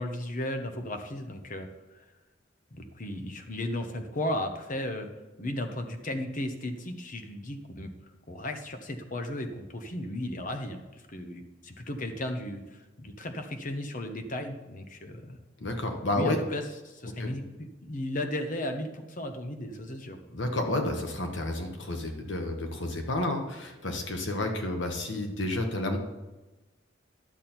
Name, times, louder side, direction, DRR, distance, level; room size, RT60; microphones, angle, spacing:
voice 1, 0.0-1.7 2.7-5.1 5.4-7.9 8.3-10.8 11.1-15.4 16.1-20.2, left 1 dB, 45° left, 6 dB, 1.0 m, -35 dB
voice 2, 15.6-16.4 17.2-17.3 20.3-26.0, left 1 dB, 75° left, 4 dB, 1.3 m, -30 dB
11.0 x 7.4 x 4.4 m, 1.1 s
head